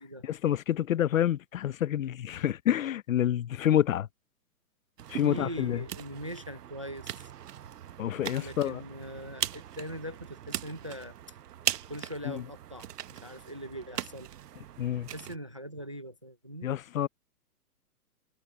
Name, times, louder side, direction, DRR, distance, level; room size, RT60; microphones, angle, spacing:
voice 1, 0.3-4.1 5.1-5.8 8.0-8.8 14.8-15.1 16.6-17.1, left 11 dB, 60° left, 0.9 m, -28 dB
sound 1, 5.0-15.4, right 11 dB, 80° right, 1.1 m, -39 dB
voice 2, 5.2-7.3 8.4-11.4 11.9-14.3 15.1-16.7, equal, 20° right, 0.4 m, -41 dB
hypercardioid pair, 170°, 46 cm